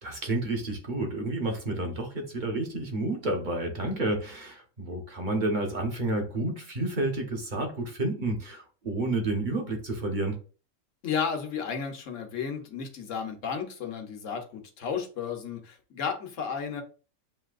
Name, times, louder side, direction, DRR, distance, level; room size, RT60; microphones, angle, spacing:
voice 1, 0.0-10.4, right 2 dB, 40° right, 2 dB, 1.1 m, -30 dB
voice 2, 11.0-16.8, left 6 dB, 70° left, 4 dB, 1.3 m, -33 dB
7.2 x 2.8 x 2.4 m, 0.36 s
omnidirectional pair, 1.3 m